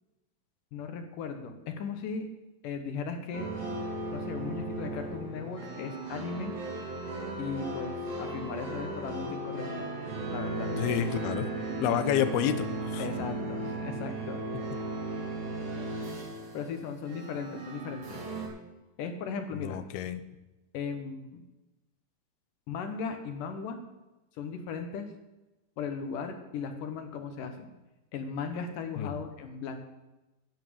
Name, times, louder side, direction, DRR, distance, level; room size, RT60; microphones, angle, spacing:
voice 1, 0.7-2.3 2.6-3.5 4.1-6.5 7.4-9.9 10.3-10.7 13.0-14.4 16.5-18.2 19.0-19.8 20.7-21.4 22.7-23.8 24.4-25.1 25.8-27.7 28.1-29.8, left 5 dB, 70° left, 7 dB, 2.5 m, -37 dB
sound 1, 3.3-18.5, right 2 dB, 70° right, 4.9 m, -36 dB
voice 2, 10.7-11.5 11.8-13.0 19.5-20.2 29.0-29.1, left 10 dB, 90° left, 12 dB, 2.8 m, -29 dB
11.0 x 8.4 x 8.7 m, 1.0 s
omnidirectional pair, 4.3 m